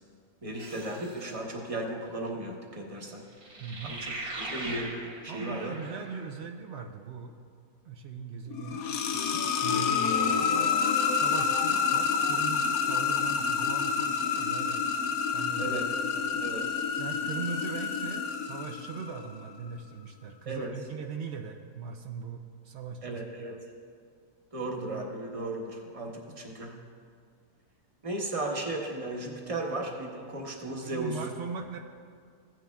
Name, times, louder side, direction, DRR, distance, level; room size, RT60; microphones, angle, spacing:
voice 1, 0.4-3.2 3.8-4.1 4.4-5.7 9.7-9.8 15.6-15.8 16.4-16.8 20.5-20.7 23.0-23.6 24.5-26.7 28.0-31.2, right 2 dB, 25° right, 0 dB, 0.9 m, -35 dB
sound 1, 0.6-1.3 3.4-6.3, right 2 dB, 65° right, 1.8 m, -40 dB
voice 2, 3.6-4.0 5.3-7.3 7.8-10.8 11.1-15.8 16.1-16.5 17.0-23.7 30.8-31.8, right 5 dB, 90° right, 4 dB, 0.5 m, -40 dB
sound 2, 8.5-19.3, left 6 dB, 70° left, 0.9 m, -28 dB
15.5 x 9.1 x 2.3 m, 2.1 s
omnidirectional pair, 1.7 m